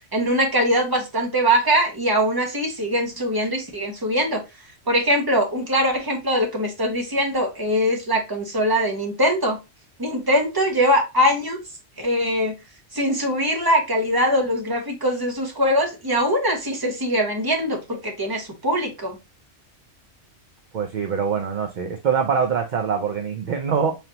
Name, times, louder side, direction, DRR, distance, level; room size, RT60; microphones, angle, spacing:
voice 1, 0.1-4.4 4.9-9.6 10.0-11.6 12.0-12.5 12.9-19.2, equal, 20° right, 2 dB, 0.9 m, -22 dB
voice 2, 20.7-24.0, right 6 dB, 60° right, 4 dB, 0.5 m, -24 dB
4.0 x 3.3 x 2.8 m, 0.25 s
omnidirectional pair, 1.2 m